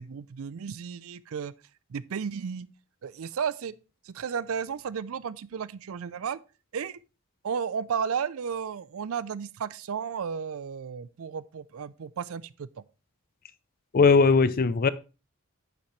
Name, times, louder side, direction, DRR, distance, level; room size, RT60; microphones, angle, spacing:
voice 1, 0.0-1.5 1.9-2.7 3.0-3.7 4.1-6.4 6.7-7.0 7.4-12.7, right 7 dB, 65° right, 0.4 m, -33 dB
voice 2, 13.9-14.9, left 4 dB, 40° left, 0.5 m, -19 dB
9.4 x 7.2 x 3.1 m
head